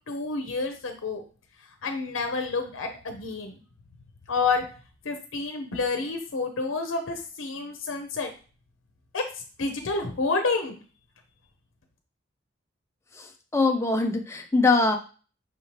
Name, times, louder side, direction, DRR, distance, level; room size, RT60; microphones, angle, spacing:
voice 1, 0.1-1.2 1.8-3.5 4.3-4.6 5.0-8.3 9.1-9.2 9.6-10.8, left 4 dB, 80° left, 5 dB, 0.7 m, -29 dB
voice 2, 13.5-15.0, left 3 dB, 15° left, 3 dB, 0.4 m, -22 dB
5.7 x 3.0 x 2.8 m, 0.37 s
head